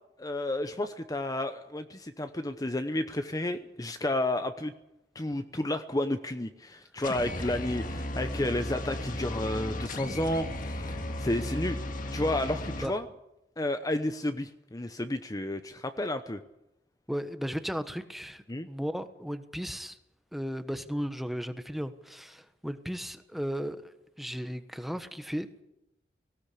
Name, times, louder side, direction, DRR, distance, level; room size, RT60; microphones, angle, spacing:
voice 1, 0.2-4.7 5.1-11.8 12.1-13.1 13.6-16.4 18.5-18.7, left 1 dB, 20° left, 9 dB, 0.8 m, -31 dB
sound 1, 7.0-12.9, left 1 dB, 50° left, 1.8 m, -35 dB
voice 2, 17.1-20.0 20.3-23.9 24.2-25.5, equal, ahead, 9 dB, 1.2 m, -35 dB
19.0 x 17.0 x 8.5 m, 0.88 s
head